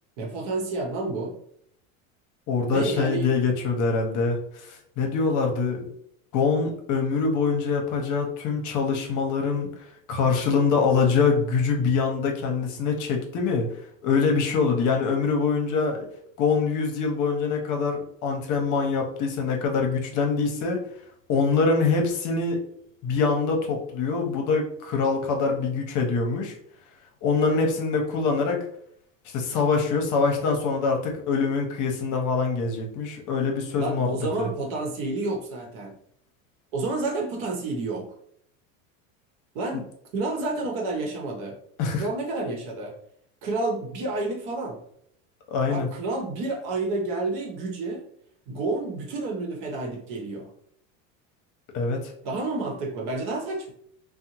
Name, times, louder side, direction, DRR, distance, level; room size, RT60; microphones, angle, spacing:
voice 1, 0.2-1.4 2.7-3.3 33.7-36.0 36.7-38.1 39.5-41.6 42.0-43.0 43.4-44.8 45.7-48.0 48.5-50.5 52.2-53.7, right 2 dB, 65° right, 1 dB, 0.9 m, -30 dB
voice 2, 2.5-5.9 6.3-9.7 10.1-13.7 14.0-16.1 16.4-20.8 21.3-22.6 23.0-26.5 27.2-28.6 29.3-34.1 34.4-34.5 39.7-39.8 41.8-42.1 45.5-45.9 51.7-52.1, left 4 dB, 50° left, 2 dB, 0.7 m, -24 dB
2.6 x 2.1 x 2.9 m, 0.67 s
supercardioid pair, 105°, 40 cm